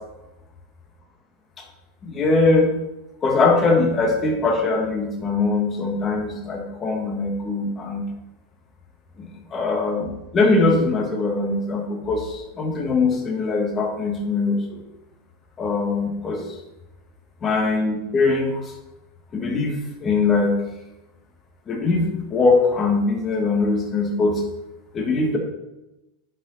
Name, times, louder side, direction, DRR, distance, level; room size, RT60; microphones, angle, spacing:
voice 1, 2.0-2.7 3.2-8.1 9.2-14.8 15.6-16.4 17.4-18.7 19.3-20.5 21.7-24.4 24.9-25.4, left 3 dB, 30° left, 1 dB, 1.9 m, -21 dB
10.0 x 5.3 x 4.1 m, 0.97 s
supercardioid pair, 125°, 0 cm